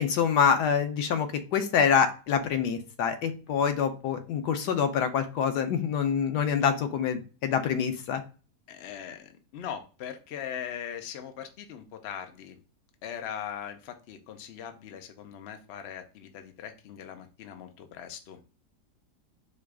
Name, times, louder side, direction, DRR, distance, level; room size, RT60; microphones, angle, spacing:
voice 1, 0.0-8.2, left 7 dB, 90° left, 8 dB, 1.3 m, -26 dB
voice 2, 8.7-12.6 13.0-18.4, left 9 dB, 55° left, 6 dB, 0.7 m, -40 dB
4.7 x 2.3 x 4.7 m, 0.35 s
omnidirectional pair, 1.7 m